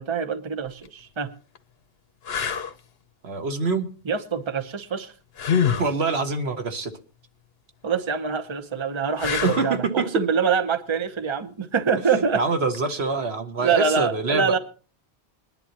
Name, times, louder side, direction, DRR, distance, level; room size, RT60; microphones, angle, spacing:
voice 1, 0.0-1.3 4.0-5.1 7.8-12.4 13.6-14.6, right 5 dB, 30° right, 9 dB, 0.9 m, -25 dB
sound 1, 0.7-0.9 1.5-1.6 2.2-2.7 5.4-5.9 9.2-9.8 12.7-12.9, left 7 dB, 70° left, 1.1 m, -25 dB
voice 2, 3.2-3.9 5.7-6.9 9.4-10.1 12.1-14.6, right 4 dB, 80° right, 7 dB, 1.6 m, -25 dB
21.5 x 11.0 x 2.9 m, 0.38 s
omnidirectional pair, 1.1 m